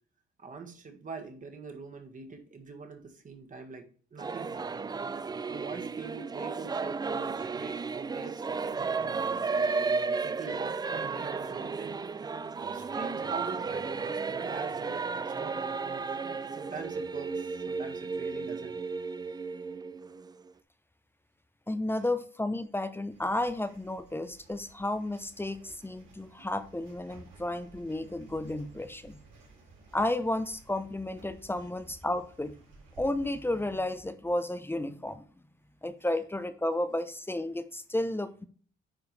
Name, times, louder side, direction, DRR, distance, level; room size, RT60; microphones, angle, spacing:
voice 1, 0.4-4.8 5.5-9.5 10.2-12.0 12.6-16.0 16.5-18.8, right 4 dB, 40° right, 4 dB, 1.8 m, -43 dB
Singing / Musical instrument, 4.2-20.5, right 4 dB, 20° right, 0.4 m, -33 dB
voice 2, 21.7-29.2 29.9-32.6 33.0-35.3 35.8-38.5, left 1 dB, 10° left, 11 dB, 0.7 m, -32 dB
sound 1, 23.1-34.0, right 3 dB, 75° right, 3.8 m, -56 dB
9.7 x 4.5 x 3.3 m, 0.43 s
cardioid pair, 90°, 20 cm